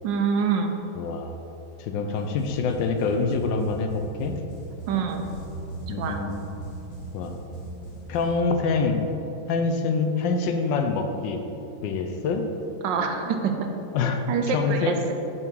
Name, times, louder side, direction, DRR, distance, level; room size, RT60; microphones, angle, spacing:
voice 1, 0.0-0.7 4.9-5.2 6.0-6.2 12.8-13.7 14.3-15.1, right 5 dB, 80° right, 5 dB, 1.3 m, -25 dB
voice 2, 1.0-1.4 1.8-4.4 5.9-6.3 7.1-7.3 8.1-9.1 9.5-11.4 11.8-12.5 13.9-14.2 14.5-14.9, left 4 dB, 80° left, 5 dB, 1.3 m, -25 dB
sound 1, 2.1-8.4, right 2 dB, 45° left, 0.8 m, -39 dB
5.7 x 4.7 x 5.2 m, 2.8 s
omnidirectional pair, 2.0 m